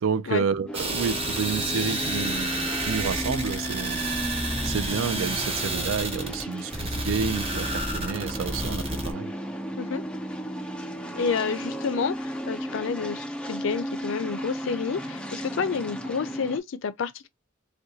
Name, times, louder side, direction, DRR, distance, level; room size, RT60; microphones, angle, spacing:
voice 1, 0.0-4.0 4.6-9.3, right 6 dB, 85° right, 0.4 m, -30 dB
sound 1, 0.7-16.6, equal, 5° left, 0.5 m, -34 dB
sound 2, 0.7-9.1, right 2 dB, 30° right, 0.8 m, -30 dB
voice 2, 11.1-17.3, left 5 dB, 65° left, 0.4 m, -29 dB
3.6 x 2.2 x 2.7 m
head